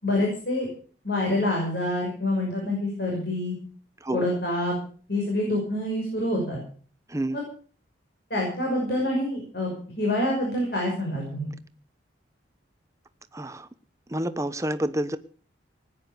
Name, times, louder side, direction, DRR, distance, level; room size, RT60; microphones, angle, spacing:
voice 1, 0.0-0.7 1.0-3.5 4.1-4.7 5.1-6.6 7.3-7.4 8.3-9.7 10.0-11.5, left 1 dB, 55° left, -1 dB, 6.2 m, -26 dB
voice 2, 13.3-13.7 14.1-15.2, right 1 dB, 15° right, 12 dB, 0.9 m, -28 dB
19.5 x 9.9 x 6.8 m, 0.43 s
head